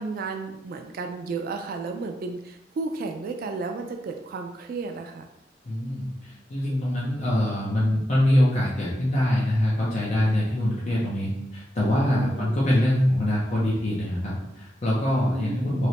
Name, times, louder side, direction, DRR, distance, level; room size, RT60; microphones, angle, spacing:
voice 1, 0.0-5.3 12.1-12.7 15.1-15.9, right 4 dB, 50° right, 5 dB, 0.3 m, -33 dB
voice 2, 5.7-15.9, left 1 dB, 40° left, -6 dB, 0.6 m, -24 dB
3.2 x 2.9 x 2.8 m, 0.84 s
head